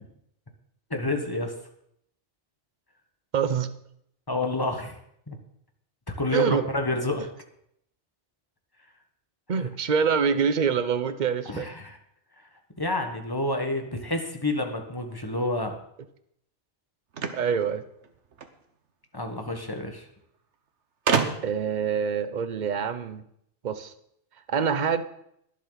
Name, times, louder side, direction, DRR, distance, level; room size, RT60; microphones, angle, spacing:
voice 1, 0.9-1.5 4.3-5.0 5.3-5.4 6.2-7.3 9.6-9.7 11.5-12.0 12.8-15.8 19.1-20.1, left 2 dB, 20° left, 4 dB, 1.5 m, -29 dB
voice 2, 3.3-3.7 6.3-6.6 9.5-11.7 17.3-17.8 21.4-23.2 23.6-23.9 24.5-25.0, right 6 dB, 45° right, 11 dB, 0.8 m, -25 dB
sound 1, 17.1-18.6 19.7-19.8 20.0-20.1 21.1-21.7, right 6 dB, 70° right, 1.3 m, -27 dB
21.5 x 7.5 x 4.0 m, 0.72 s
omnidirectional pair, 1.2 m